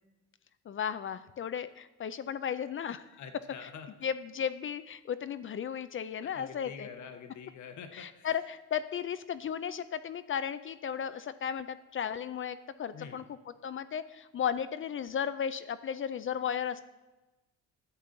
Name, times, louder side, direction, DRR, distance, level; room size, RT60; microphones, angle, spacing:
voice 1, 0.7-3.2 3.6-3.7 4.0-6.9 7.9-16.8, left 8 dB, 45° left, 13 dB, 0.5 m, -35 dB
voice 2, 3.2-3.9 6.2-8.3 12.9-13.2, left 6 dB, 70° left, 6 dB, 1.2 m, -46 dB
11.0 x 7.2 x 3.8 m, 1.1 s
cardioid pair, 90°, 30 cm